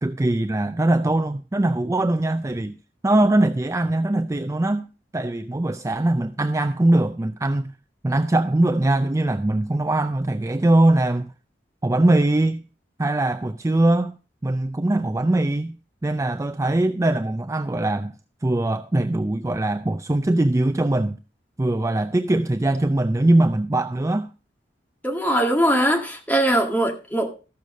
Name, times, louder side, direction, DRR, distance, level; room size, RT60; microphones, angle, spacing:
voice 1, 0.0-2.8 3.0-7.7 8.0-11.3 11.8-12.6 13.0-14.2 14.4-18.1 18.4-21.2 21.6-24.3, right 1 dB, 15° right, 0.4 m, -21 dB
voice 2, 25.0-27.3, right 1 dB, 10° left, 2.1 m, -21 dB
14.0 x 6.6 x 5.1 m
head